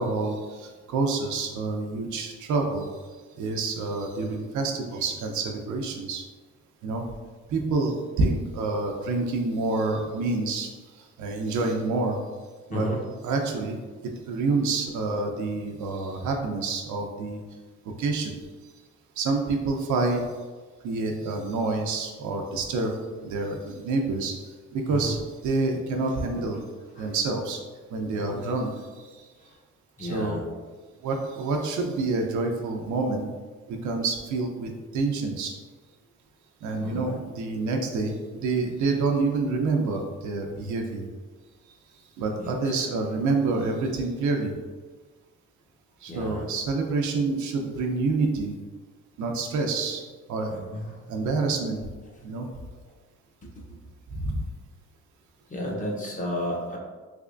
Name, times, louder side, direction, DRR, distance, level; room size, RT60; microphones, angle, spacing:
voice 1, 0.0-2.9 3.4-6.2 6.8-7.0 7.5-12.2 12.7-12.9 13.2-13.8 14.0-17.4 18.0-18.3 19.2-20.3 20.8-23.0 23.2-24.3 24.7-26.6 26.9-27.6 27.9-28.7 29.0-29.2 30.0-30.4 31.0-33.3 33.7-35.5 36.6-41.0 42.2-44.5 46.0-48.6 49.2-50.0 50.3-50.5 51.1-51.8 52.2-52.5 54.1-54.4, right 3 dB, 75° right, 2 dB, 0.6 m, -27 dB
voice 2, 30.0-30.4 36.8-37.1 42.4-42.7 46.0-46.4 50.5-50.9 55.5-56.8, equal, 25° left, -2 dB, 0.8 m, -32 dB
3.4 x 3.0 x 2.5 m, 1.4 s
cardioid pair, 90°, 30 cm